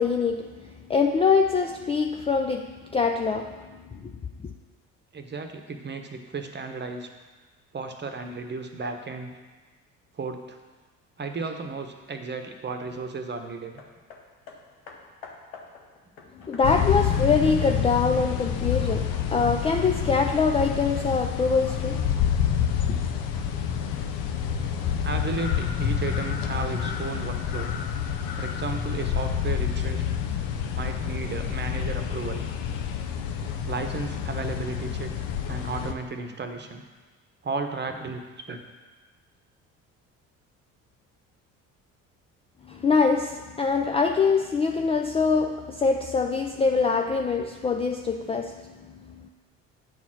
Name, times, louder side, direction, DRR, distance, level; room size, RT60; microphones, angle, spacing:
voice 1, 0.0-4.1 4.4-4.5 16.3-22.3 22.9-23.0 42.6-49.3, left 5 dB, 15° left, 3 dB, 0.4 m, -24 dB
voice 2, 5.1-7.1 7.7-9.3 10.1-10.6 11.2-13.8 24.5-27.7 28.4-30.1 30.7-32.4 33.6-35.1 35.5-36.8 37.4-38.6, right 4 dB, 25° right, 5 dB, 1.1 m, -34 dB
Hammer, 13.8-18.5 19.3-19.4, left 4 dB, 85° left, 1.0 m, -48 dB
sound 1, 16.6-35.9, left 8 dB, 60° left, 0.8 m, -28 dB
9.2 x 4.2 x 5.9 m, 1.3 s
hypercardioid pair, 55°, 40 cm